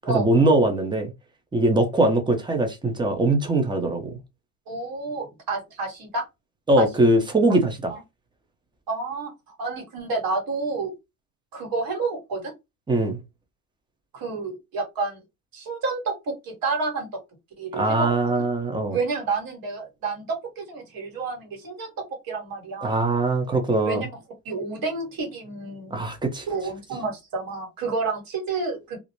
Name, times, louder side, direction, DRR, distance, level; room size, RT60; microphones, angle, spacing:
voice 1, 0.0-1.1 1.5-4.1 6.7-8.0 12.9-13.2 17.7-19.0 22.8-24.1 25.9-26.5, right 2 dB, 10° right, 0.7 m, -21 dB
voice 2, 4.7-6.2 6.8-6.9 7.9-8.0 8.9-10.9 11.5-12.5 14.1-15.2 15.5-17.2 17.6-18.1 18.9-21.9 22.3-23.0 23.8-24.1 24.4-26.0 26.5-29.0, right 3 dB, 50° right, 1.4 m, -29 dB
2.5 x 2.0 x 3.0 m
supercardioid pair, 95°, 47 cm